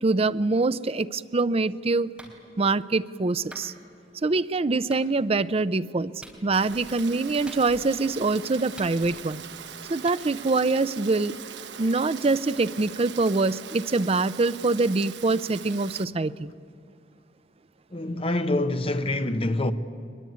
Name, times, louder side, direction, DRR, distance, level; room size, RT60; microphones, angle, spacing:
voice 1, 0.0-2.1 2.6-3.7 4.2-6.1 6.4-9.4 9.9-11.4 11.8-16.5, right 3 dB, 35° right, 0.5 m, -24 dB
Clapping, 2.2-2.4 3.5-3.7 4.9-5.1 6.2-6.4 7.5-7.9 8.8-9.3 10.1-10.2, right 1 dB, 5° right, 3.7 m, -45 dB
Rain, 6.5-16.0, right 8 dB, 85° right, 0.9 m, -41 dB
voice 2, 17.9-19.7, left 1 dB, 35° left, 1.0 m, -26 dB
23.5 x 21.0 x 9.4 m
head